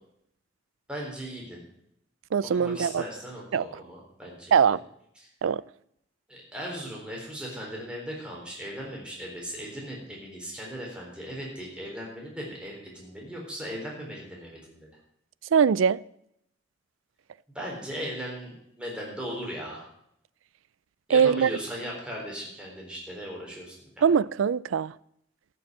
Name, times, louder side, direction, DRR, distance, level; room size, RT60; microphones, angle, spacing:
voice 1, 0.9-1.6 2.5-4.6 5.2-5.3 6.3-15.0 17.5-19.9 21.1-24.1, equal, 5° right, 3.9 m, -38 dB
voice 2, 2.3-3.0 3.5-3.7 4.5-4.8 5.4-5.6 15.5-16.0 21.1-21.5 24.0-24.9, right 7 dB, 85° right, 0.4 m, -22 dB
13.5 x 6.9 x 7.7 m
head